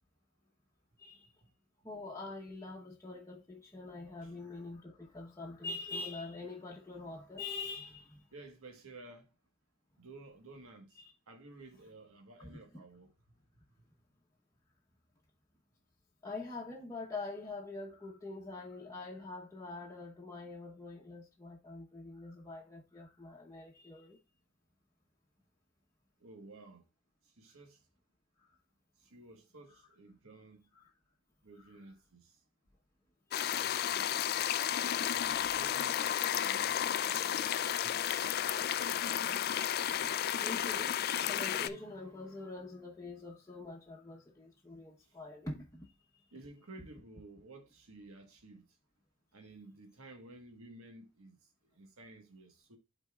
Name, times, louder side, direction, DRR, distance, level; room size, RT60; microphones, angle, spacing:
voice 1, 1.8-8.3 11.0-11.1 12.4-12.8 16.2-24.2 30.7-30.9 33.3-33.9 34.5-35.3 38.9-46.2, left 3 dB, 15° left, 0.9 m, -45 dB
voice 2, 8.3-9.3 10.0-13.1 26.2-26.8 27.2-27.8 29.0-30.7 31.4-32.4 33.5-34.2 35.1-37.4 37.8-38.1 45.0-45.2 46.3-48.7 49.3-51.4 51.6-52.8, right 2 dB, 80° right, 1.4 m, -54 dB
sound 1, 33.3-41.7, left 10 dB, 45° left, 0.3 m, -32 dB
11.5 x 4.1 x 2.3 m
head